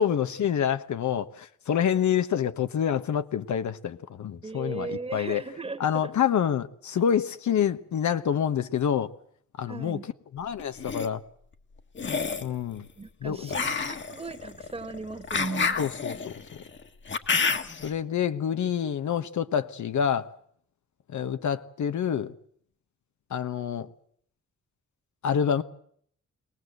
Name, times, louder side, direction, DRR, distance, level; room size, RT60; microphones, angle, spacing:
voice 1, 0.0-5.4 5.8-9.1 9.6-10.0 10.3-11.2 12.4-12.9 13.2-13.5 15.8-16.4 17.8-20.3 21.1-22.3 23.3-23.9 25.2-25.6, left 8 dB, 75° left, 1.3 m, -27 dB
voice 2, 4.4-6.1 9.7-10.1 13.0-15.8, right 3 dB, 20° right, 1.8 m, -37 dB
sound 1, 10.6-11.1 11.9-12.5 13.5-17.9, left 5 dB, 40° left, 1.7 m, -29 dB
23.5 x 19.5 x 7.9 m
wide cardioid pair, 165°, 29 cm